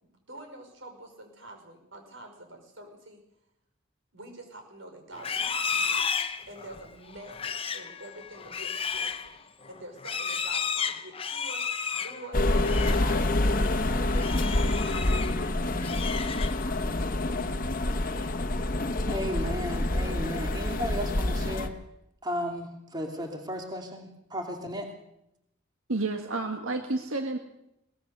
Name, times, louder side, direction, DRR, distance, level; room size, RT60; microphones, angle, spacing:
voice 1, 0.0-3.2 4.1-6.0 6.5-11.7 12.0-13.5 14.4-15.7 16.1-16.8, right 2 dB, 70° right, 4 dB, 5.7 m, -47 dB
Livestock farm animals working animals, 5.1-13.1 13.4-13.7 14.1-15.4 15.7-16.8, left 6 dB, 25° left, 0.8 m, -33 dB
sound 1, 12.3-21.7, left 2 dB, 45° left, 1.3 m, -27 dB
voice 2, 19.1-21.8 22.2-24.9, equal, 20° right, 2 dB, 2.6 m, -34 dB
voice 3, 25.9-27.4, right 2 dB, 90° right, 5 dB, 1.8 m, -30 dB
22.0 x 19.5 x 6.8 m, 0.82 s
head